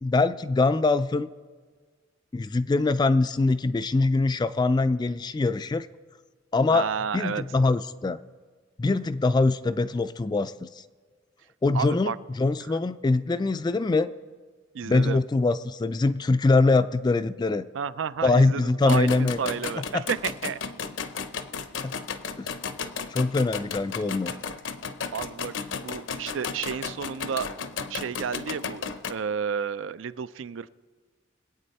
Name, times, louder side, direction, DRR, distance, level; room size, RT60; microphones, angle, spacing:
voice 1, 0.0-1.3 2.3-5.9 6.5-6.9 7.1-8.2 8.8-10.7 11.6-12.1 12.4-14.1 14.8-17.7 18.2-20.0 21.8-21.9 22.4-22.5 23.1-24.3, left 3 dB, 20° left, 12 dB, 0.3 m, -23 dB
voice 2, 6.7-7.4 11.7-12.2 14.7-15.2 17.7-20.6 25.1-25.5 25.8-27.5 27.9-30.7, right 7 dB, 80° right, 16 dB, 0.4 m, -31 dB
sound 1, 18.8-29.1, left 5 dB, 75° left, 0.7 m, -34 dB
22.5 x 8.5 x 4.2 m, 1.5 s
head